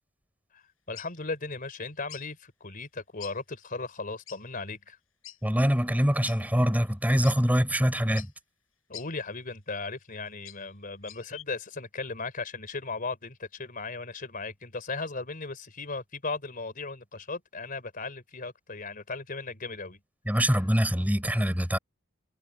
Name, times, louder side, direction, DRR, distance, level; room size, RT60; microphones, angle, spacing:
sound 1, 0.9-1.2 2.1-2.3 3.2-3.4 3.7-3.8 4.3-4.4 5.2-5.4 6.2-6.4 6.9-7.0 7.2-7.4 8.1-8.3 8.9-9.1 10.0-10.7 11.0-11.4, left 13 dB, 85° left, 6.4 m, -44 dB
voice 1, 0.9-5.0 8.9-20.0, left 3 dB, 45° left, 3.9 m, -37 dB
voice 2, 5.4-8.3 20.3-21.8, equal, 10° right, 4.5 m, -24 dB
head